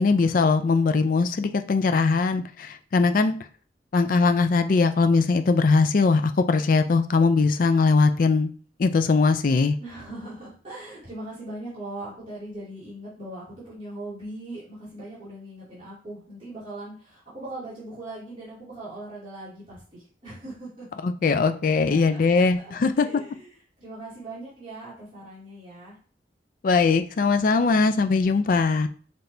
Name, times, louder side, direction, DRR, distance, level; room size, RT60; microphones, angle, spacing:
voice 1, 0.0-3.4 3.9-8.5 8.8-9.8 21.0-23.2 26.6-28.9, left 4 dB, 50° left, 9 dB, 0.4 m, -21 dB
voice 2, 9.8-20.9 21.9-23.5 23.8-26.0, right 1 dB, 30° right, -12 dB, 2.3 m, -40 dB
5.8 x 3.2 x 2.7 m, 0.43 s
head